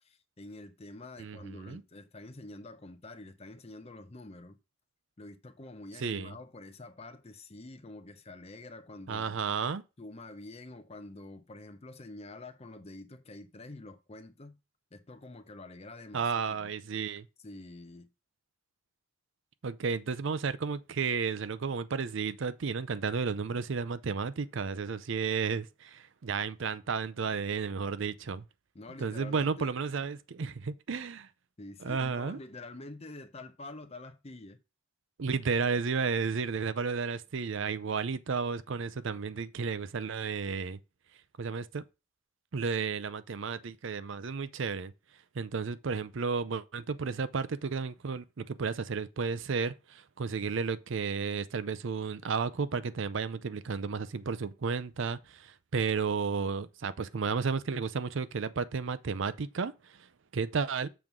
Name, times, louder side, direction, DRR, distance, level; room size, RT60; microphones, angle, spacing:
voice 1, 0.0-4.6 5.2-9.4 10.0-14.6 14.9-16.7 17.4-18.1 28.7-29.7 31.6-34.6, left 2 dB, 30° left, 0.7 m, -47 dB
voice 2, 1.2-1.8 6.0-6.3 9.1-9.8 16.1-17.3 19.6-28.4 29.0-31.3 31.8-32.4 35.2-40.8 41.4-41.8 42.5-44.9 45.3-60.9, right 5 dB, 60° right, 0.5 m, -33 dB
7.1 x 3.7 x 6.0 m
head